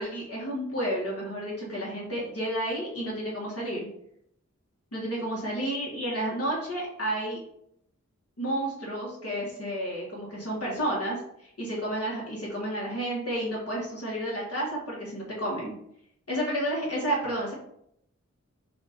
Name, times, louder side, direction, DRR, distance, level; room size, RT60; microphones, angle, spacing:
voice 1, 0.0-3.9 4.9-7.4 8.4-15.7 16.3-17.5, right 1 dB, 50° left, -5 dB, 1.7 m, -31 dB
6.9 x 2.6 x 5.2 m, 0.74 s
wide cardioid pair, 50°, 30 cm